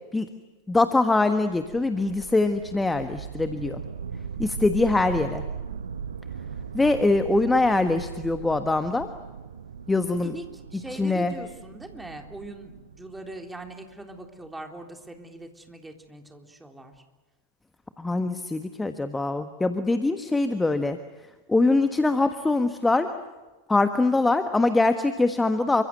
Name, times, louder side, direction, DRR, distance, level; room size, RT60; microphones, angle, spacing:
voice 1, 0.7-3.8 4.4-5.4 6.7-9.1 9.9-10.3 11.0-11.3 18.0-21.0 21.5-23.1 23.7-25.8, left 2 dB, 10° left, 9 dB, 1.3 m, -23 dB
sound 1, 1.4-14.5, right 6 dB, 70° right, 1.2 m, -39 dB
voice 2, 10.2-16.9, right 2 dB, 5° right, 3 dB, 3.7 m, -41 dB
29.0 x 25.0 x 7.9 m, 1.2 s
figure-of-eight pair, 90°, 0 cm